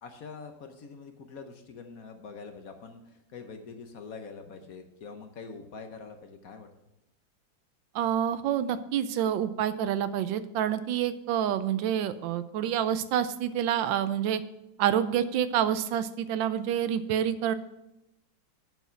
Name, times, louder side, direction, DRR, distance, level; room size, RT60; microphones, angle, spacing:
voice 1, 0.0-6.7, left 5 dB, 55° left, 6 dB, 1.2 m, -44 dB
voice 2, 7.9-14.4 14.8-17.5, right 10 dB, 90° right, 13 dB, 1.3 m, -28 dB
8.3 x 7.1 x 5.8 m, 0.90 s
omnidirectional pair, 2.0 m